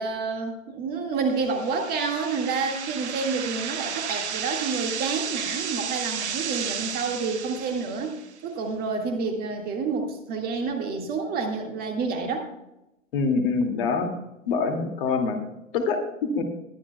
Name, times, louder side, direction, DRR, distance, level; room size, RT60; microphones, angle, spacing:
voice 1, 0.0-8.1 8.4-12.5, right 4 dB, 25° right, 4 dB, 1.8 m, -29 dB
sound 1, 1.4-8.3, right 8 dB, 60° right, 1.1 m, -33 dB
voice 2, 13.1-14.1 14.5-15.4 15.7-16.0 16.3-16.4, left 4 dB, 45° left, 4 dB, 2.2 m, -24 dB
21.5 x 10.5 x 2.2 m, 0.91 s
figure-of-eight pair, 115°, 39 cm